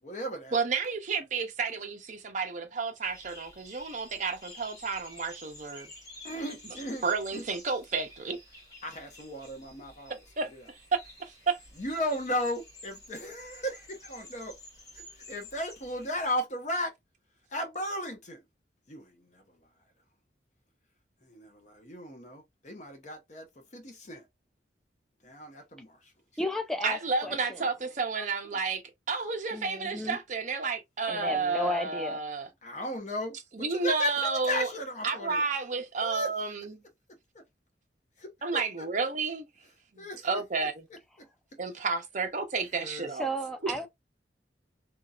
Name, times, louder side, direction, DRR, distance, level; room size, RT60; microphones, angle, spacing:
voice 1, 0.0-0.6 6.2-7.1 7.3-7.5 8.8-10.2 10.4-10.7 11.8-14.6 14.9-16.9 17.5-18.4 18.9-19.7 21.2-24.3 25.2-26.1 27.3-27.4 32.6-35.4 36.0-36.3 37.3-37.4 38.2-38.9 40.0-41.3 42.7-43.3 43.7-43.9, left 1 dB, 40° left, 0.8 m, -36 dB
voice 2, 0.5-5.9 7.0-8.4 10.4-10.5 11.2-11.6 26.8-28.8 29.1-32.5 33.6-34.7 35.0-36.7 38.4-39.5 39.9-40.8 41.6-43.3 43.6-43.8, right 4 dB, 45° right, 0.6 m, -31 dB
sound 1, 3.0-16.3, left 1 dB, 20° left, 1.5 m, -51 dB
voice 3, 26.4-27.7 28.2-28.5 29.5-30.2 31.1-32.4 43.2-43.9, left 1 dB, ahead, 0.3 m, -34 dB
2.9 x 2.6 x 2.4 m
head